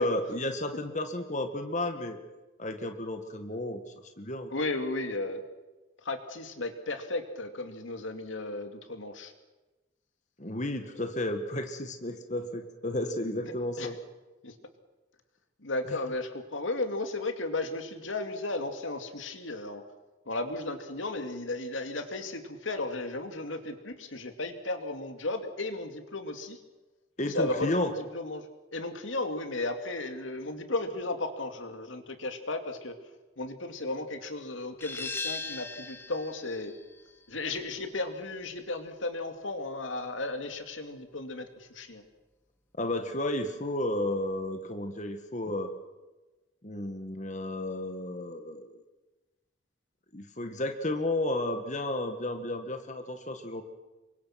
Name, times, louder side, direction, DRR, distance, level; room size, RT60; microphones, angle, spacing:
voice 1, 0.0-2.2 2.6-4.5 10.4-14.0 15.9-16.0 27.2-27.9 42.8-45.7 46.6-48.8 50.1-53.6, left 1 dB, 40° left, 6 dB, 1.9 m, -32 dB
voice 2, 4.5-5.4 6.0-9.3 13.8-13.9 14.4-14.5 15.6-19.8 20.3-26.6 27.2-28.4 28.7-33.0 33.4-36.7 37.3-42.0, left 2 dB, 90° left, 6 dB, 2.5 m, -34 dB
sound 1, 34.8-40.2, left 3 dB, 10° left, 0.9 m, -41 dB
28.0 x 24.0 x 6.0 m, 1.1 s
head